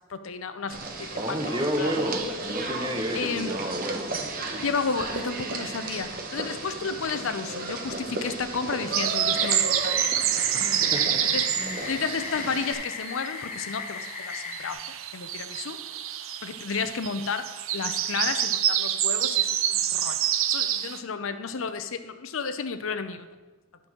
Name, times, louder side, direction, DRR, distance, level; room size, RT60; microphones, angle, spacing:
voice 1, 0.0-1.4 1.8-1.9 3.1-3.5 4.6-10.0 10.4-10.6 11.3-14.8 15.1-15.8 16.4-20.2 20.5-23.3, left 5 dB, 75° left, 10 dB, 0.6 m, -32 dB
sound 1, 0.7-12.7, right 2 dB, 45° right, 1.0 m, -34 dB
voice 2, 1.2-4.3 10.5-11.2 11.6-11.8, equal, 20° right, 4 dB, 0.9 m, -31 dB
sound 2, 8.9-13.3 13.5-21.0, right 11 dB, 80° right, 0.5 m, -27 dB
sound 3, 9.3-14.7, left 5 dB, 35° left, 0.8 m, -37 dB
11.5 x 4.0 x 6.1 m, 1.2 s
head